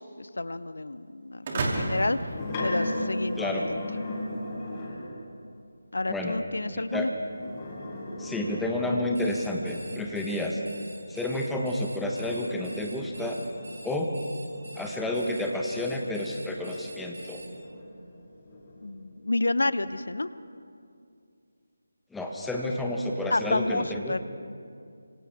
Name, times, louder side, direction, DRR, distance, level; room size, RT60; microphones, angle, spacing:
voice 1, 0.0-2.3 2.6-3.8 5.9-7.1 18.8-20.3 23.3-24.2, left 2 dB, 70° left, 14 dB, 0.8 m, -29 dB
sound 1, 1.4-3.4, right 2 dB, 35° right, 3.0 m, -32 dB
sound 2, 1.9-5.2 7.2-9.5 11.5-16.7 17.2-19.0, left 1 dB, 25° left, 4.8 m, -37 dB
voice 2, 6.1-6.4 6.7-7.1 8.2-10.6 11.1-13.4 13.8-14.1 14.8-17.4 22.1-24.2, left 1 dB, 5° left, 0 dB, 1.4 m, -30 dB
Alarm, 9.1-17.5, right 2 dB, 65° right, 5.8 m, -46 dB
29.5 x 26.0 x 3.6 m, 2.4 s
figure-of-eight pair, 155°, 0 cm